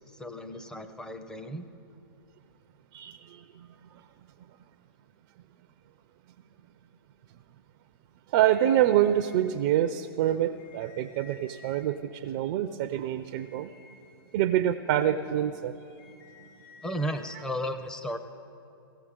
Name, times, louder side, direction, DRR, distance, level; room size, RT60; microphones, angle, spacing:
voice 1, 0.1-1.7 16.8-18.2, equal, 5° left, 7 dB, 0.6 m, -34 dB
voice 2, 2.9-4.0 8.3-13.7 14.3-15.8, right 11 dB, 45° right, 10 dB, 0.5 m, -26 dB
sound 1, 8.4-9.4 10.2-11.9 13.2-14.5 15.8-17.4, left 6 dB, 55° left, 1.7 m, -55 dB
17.5 x 15.0 x 3.7 m, 2.6 s
hypercardioid pair, 120°, 13 cm